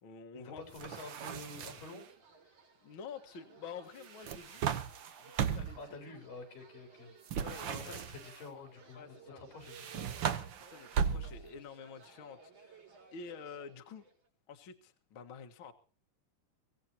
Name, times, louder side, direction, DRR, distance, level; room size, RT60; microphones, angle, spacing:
voice 1, 0.0-0.6 2.8-4.7 5.2-6.0 7.4-8.0 8.9-9.4 10.7-14.0 14.5-15.7, left 6 dB, 45° left, 5 dB, 1.9 m, -49 dB
voice 2, 0.6-2.1 5.8-10.1 11.0-11.1, left 3 dB, 90° left, 5 dB, 6.1 m, -49 dB
sound 1, 0.6-14.3, right 5 dB, 65° right, 5.6 m, -59 dB
sound 2, 0.7-2.0 4.0-5.9 7.3-8.4 9.6-11.6, right 8 dB, 80° right, 1.0 m, -36 dB
24.0 x 17.0 x 2.8 m, 0.38 s
omnidirectional pair, 3.8 m